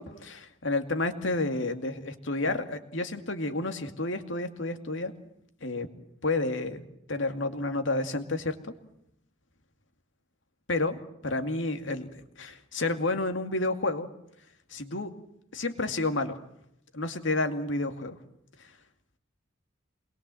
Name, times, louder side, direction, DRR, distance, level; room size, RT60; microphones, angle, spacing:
voice 1, 0.0-5.1 5.6-5.9 6.2-6.8 7.1-8.7 10.7-12.1 12.4-14.1 14.7-15.1 15.5-16.4 16.9-18.2, left 2 dB, 70° left, 7 dB, 2.3 m, -30 dB
27.5 x 21.5 x 7.8 m, 0.76 s
head